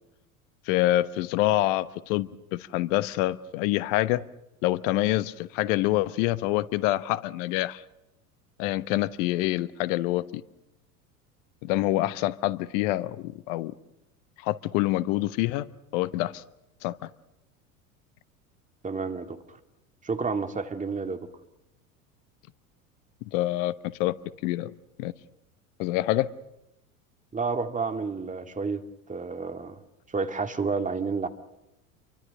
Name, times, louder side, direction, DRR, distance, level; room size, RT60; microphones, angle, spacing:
voice 1, 0.7-4.2 4.6-7.8 8.6-10.4 11.6-13.7 14.4-15.7 15.9-16.4 16.8-17.1 23.3-24.1 24.4-24.7 25.0-25.1 25.8-26.3, left 16 dB, 60° left, 16 dB, 1.2 m, -26 dB
voice 2, 18.8-19.4 20.0-21.3 27.3-28.8 29.1-29.8 30.1-31.3, right 4 dB, 20° right, 7 dB, 2.2 m, -30 dB
28.5 x 24.0 x 6.6 m, 0.90 s
hypercardioid pair, 80°, 42 cm